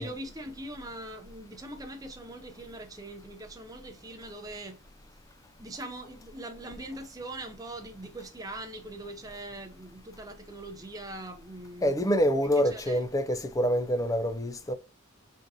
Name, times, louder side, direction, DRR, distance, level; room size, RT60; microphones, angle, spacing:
voice 1, 0.0-4.8 5.6-12.0 12.7-13.0, right 1 dB, 20° right, 0.7 m, -42 dB
voice 2, 11.8-14.7, equal, 15° left, 0.4 m, -26 dB
4.0 x 3.6 x 2.6 m
head